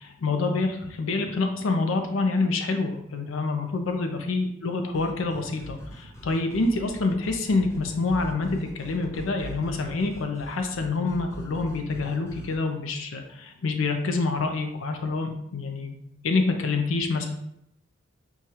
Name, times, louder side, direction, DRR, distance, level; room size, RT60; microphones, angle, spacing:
voice 1, 0.0-15.9 16.2-17.3, left 3 dB, 80° left, 5 dB, 0.5 m, -27 dB
sound 1, 4.9-12.6, equal, 15° left, 0.5 m, -43 dB
6.3 x 2.3 x 2.8 m, 0.79 s
head